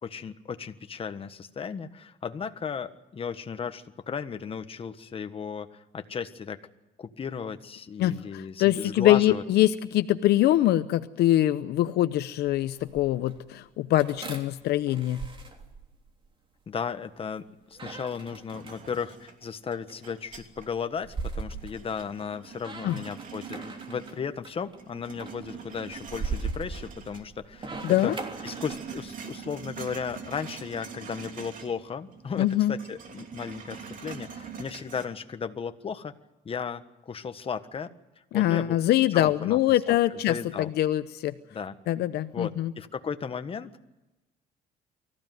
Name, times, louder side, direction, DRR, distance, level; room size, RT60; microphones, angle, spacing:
voice 1, 0.0-6.6 7.0-9.4 16.7-17.4 17.7-27.8 28.0-28.1 28.4-36.1 36.4-37.9 38.3-38.8 39.1-39.6 39.9-40.0 40.3-40.7 41.5-41.7 42.3-43.8, left 6 dB, 35° left, 9 dB, 1.5 m, -35 dB
voice 2, 8.0-15.2 22.8-22.9 27.8-28.2 32.4-32.7 38.3-41.3 41.9-42.7, left 14 dB, 75° left, 11 dB, 0.8 m, -24 dB
sound 1, 12.5-13.4 14.0-16.3 17.7-19.0 19.7-22.3 22.6-24.1 24.4-24.8 25.2-29.1, right 4 dB, 30° right, 3.3 m, -39 dB
sound 2, 18.5-20.8 21.2-24.4 24.7-27.2 27.5-31.8 32.1-35.0, right 6 dB, 50° right, 3.1 m, -44 dB
24.5 x 15.5 x 9.4 m, 1.0 s
cardioid pair, 110°, 17 cm